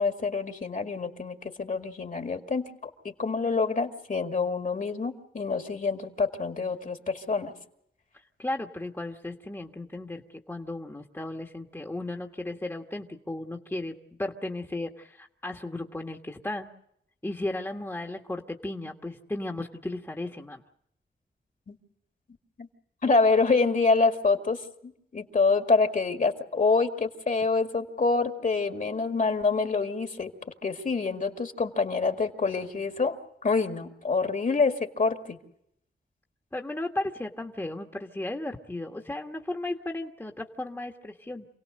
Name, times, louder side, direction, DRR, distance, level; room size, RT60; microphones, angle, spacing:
voice 1, 0.0-7.5 21.7-21.8 22.6-22.7 23.0-30.3 30.6-35.4, left 4 dB, 45° left, 5 dB, 2.2 m, -26 dB
voice 2, 8.1-10.2 10.5-16.7 17.2-20.6 36.5-41.5, left 2 dB, 10° left, 2 dB, 1.5 m, -35 dB
28.0 x 17.5 x 6.6 m, 0.74 s
cardioid pair, 65°, 19 cm